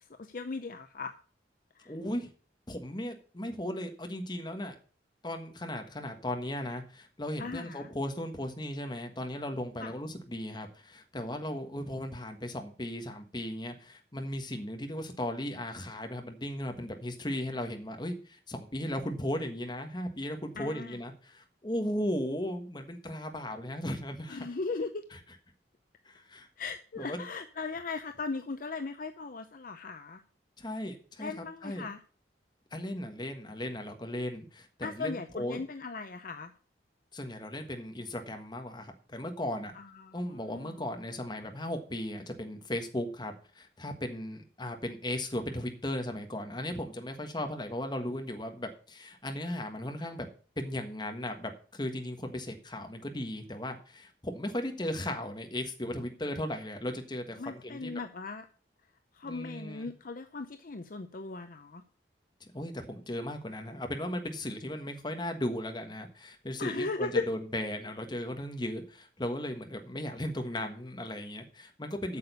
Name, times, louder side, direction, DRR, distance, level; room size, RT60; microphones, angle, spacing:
voice 1, 0.2-1.1 1.8-1.9 7.4-7.9 9.8-9.9 20.6-21.0 24.3-25.0 26.6-30.2 31.2-32.0 34.8-36.5 39.7-40.8 57.4-58.5 59.1-61.8 66.6-67.3 72.1-72.2, left 4 dB, 50° left, 8 dB, 0.6 m, -38 dB
voice 2, 1.8-2.3 2.7-4.7 5.2-24.5 25.1-25.2 26.0-26.5 27.0-27.3 30.6-31.9 32.7-35.6 37.1-39.7 40.1-50.3 50.6-57.9 59.2-59.9 62.4-72.2, left 1 dB, 25° left, 5 dB, 1.4 m, -36 dB
8.6 x 6.8 x 6.8 m, 0.41 s
head